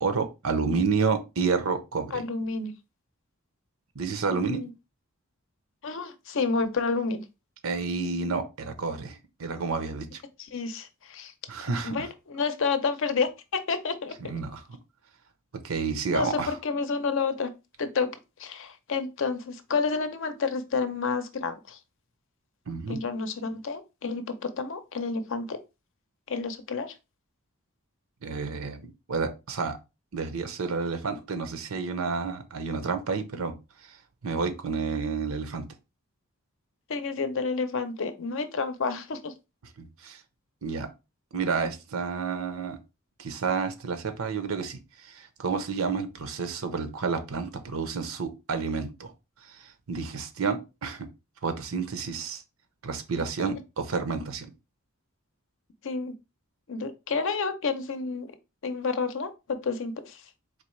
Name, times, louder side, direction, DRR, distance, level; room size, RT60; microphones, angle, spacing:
voice 1, 0.0-2.2 3.9-4.6 7.6-10.2 11.5-12.1 14.2-14.6 15.5-16.6 22.7-23.0 28.2-29.8 30.1-33.6 33.8-34.0 34.2-35.7 39.8-40.2 40.6-40.9 41.3-42.8 43.2-49.1 49.5-51.1 51.4-52.4 52.8-54.5, right 4 dB, 80° right, 0.7 m, -30 dB
voice 2, 2.1-2.7 4.3-4.7 5.8-7.2 10.5-11.3 11.8-14.1 16.1-17.5 17.8-18.1 18.4-21.8 22.9-25.6 26.3-26.9 36.9-39.3 55.8-56.1 56.7-58.3 58.6-60.2, left 4 dB, 65° left, 0.6 m, -30 dB
4.0 x 3.1 x 3.1 m
head